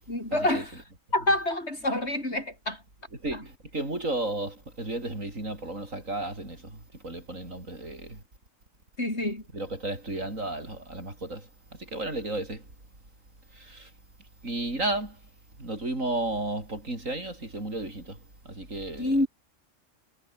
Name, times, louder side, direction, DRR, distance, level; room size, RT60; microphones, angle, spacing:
voice 1, 0.1-0.8 1.1-2.8 3.3-3.4 9.0-9.4 19.0-19.3, left 1 dB, 55° left, 7.0 m, -27 dB
voice 2, 3.2-6.8 7.0-8.2 9.5-11.5 11.8-12.6 13.5-13.9 14.4-15.2 15.6-18.2 18.5-19.1, right 2 dB, 80° right, 7.0 m, -33 dB
omnidirectional pair, 1.3 m